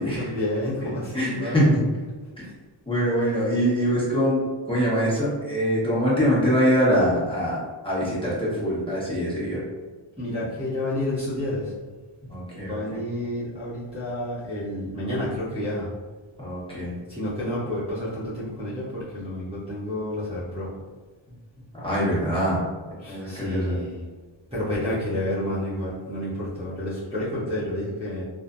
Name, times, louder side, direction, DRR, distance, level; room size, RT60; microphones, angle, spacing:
voice 1, 0.0-1.8 2.4-2.5 3.2-3.4 10.2-11.7 12.6-15.9 17.1-20.7 23.0-24.0 24.5-28.2, left 1 dB, 10° right, -13 dB, 0.8 m, -30 dB
voice 2, 1.1-1.7 2.9-7.6 7.8-9.6 12.3-12.7 16.4-16.9 21.8-22.6 23.1-23.8, equal, 10° left, -9 dB, 1.1 m, -23 dB
3.1 x 2.1 x 2.5 m, 1.4 s
wide cardioid pair, 75°, 49 cm